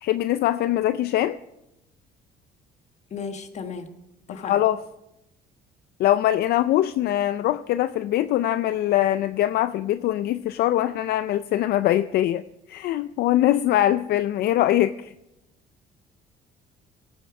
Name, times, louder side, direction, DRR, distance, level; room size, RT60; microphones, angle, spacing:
voice 1, 0.0-1.4 4.3-4.8 6.0-12.4 12.7-15.1, left 13 dB, 70° left, 12 dB, 0.4 m, -22 dB
voice 2, 3.1-3.9 4.3-4.6, left 5 dB, 40° left, 8 dB, 1.3 m, -34 dB
17.5 x 8.7 x 4.8 m, 0.90 s
cardioid pair, 110°, 17 cm